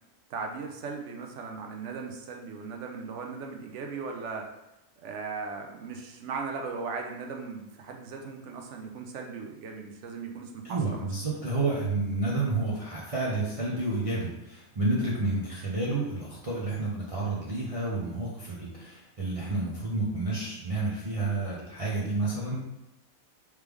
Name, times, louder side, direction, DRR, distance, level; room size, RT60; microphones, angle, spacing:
voice 1, 0.3-4.5 5.0-11.1, right 4 dB, 65° right, 3 dB, 0.8 m, -38 dB
voice 2, 10.6-22.6, right 2 dB, 40° right, -6 dB, 0.5 m, -30 dB
3.2 x 3.2 x 3.4 m, 0.90 s
omnidirectional pair, 1.5 m